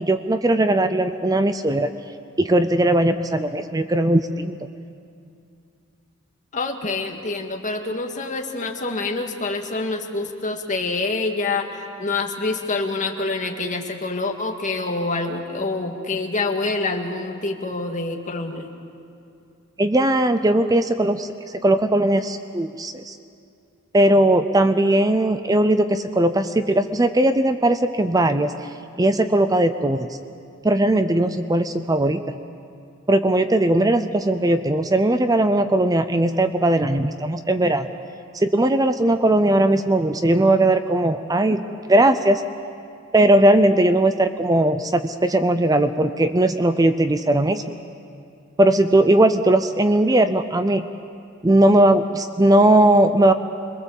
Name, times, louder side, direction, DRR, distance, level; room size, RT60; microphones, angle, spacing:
voice 1, 0.0-1.9 2.4-4.6 19.8-23.2 23.9-28.7 29.0-30.2 30.6-32.2 33.1-37.9 38.3-42.4 43.1-47.7 48.6-50.9 51.4-53.3, right 1 dB, 20° right, 9 dB, 0.6 m, -18 dB
voice 2, 6.5-18.7, left 3 dB, 40° left, 2 dB, 2.0 m, -26 dB
26.5 x 22.5 x 7.3 m, 2.5 s
head